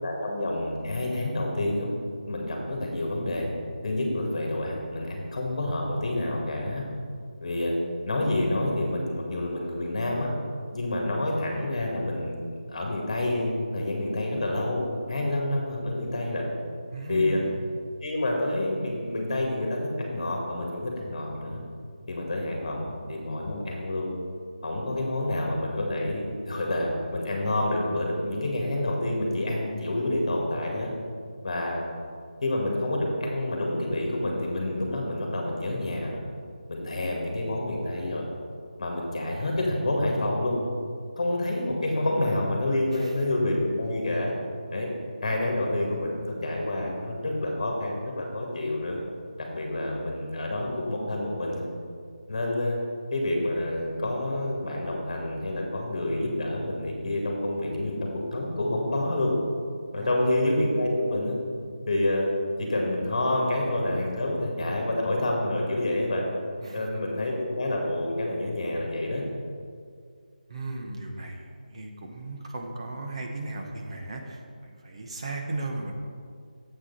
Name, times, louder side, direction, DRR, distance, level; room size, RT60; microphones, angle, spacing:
voice 1, 0.0-1.9 2.2-3.5 3.8-6.9 7.4-7.8 8.1-10.3 10.7-12.4 12.7-14.8 15.1-16.5 17.1-17.4 18.0-21.6 22.1-24.1 24.6-30.9 31.4-31.8 32.4-36.2 36.7-38.3 38.8-40.6 41.2-44.3 44.7-44.9 45.2-49.0 49.4-51.6 52.3-52.8 53.1-59.3 59.9-61.4 61.9-62.3 62.6-66.3 66.7-69.2, left 1 dB, 45° left, 0 dB, 1.9 m, -28 dB
voice 2, 16.9-17.5 42.9-43.1 59.9-60.4 66.6-66.9 70.5-75.9, right 2 dB, 40° right, 1 dB, 1.0 m, -36 dB
8.6 x 7.7 x 4.1 m, 2.2 s
figure-of-eight pair, 165°, 5 cm